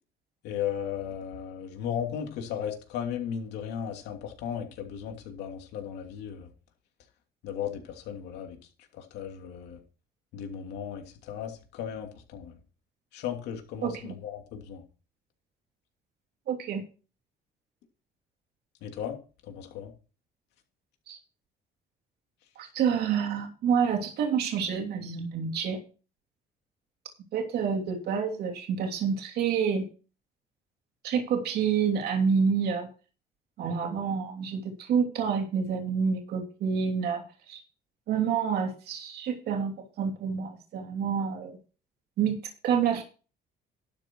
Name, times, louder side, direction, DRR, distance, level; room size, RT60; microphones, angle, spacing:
voice 1, 0.4-6.5 7.4-8.6 8.9-9.8 10.3-12.6 13.1-14.8 18.8-19.2 19.4-19.9, left 9 dB, 85° left, 3.0 m, -36 dB
voice 2, 13.8-14.1 16.5-16.8 21.1-21.2 22.6-25.8 27.3-29.9 31.0-32.9 33.6-37.6 38.1-41.6 42.2-42.4 42.6-43.0, right 6 dB, 70° right, 3.0 m, -28 dB
12.0 x 6.9 x 4.7 m
cardioid pair, 110°, 17 cm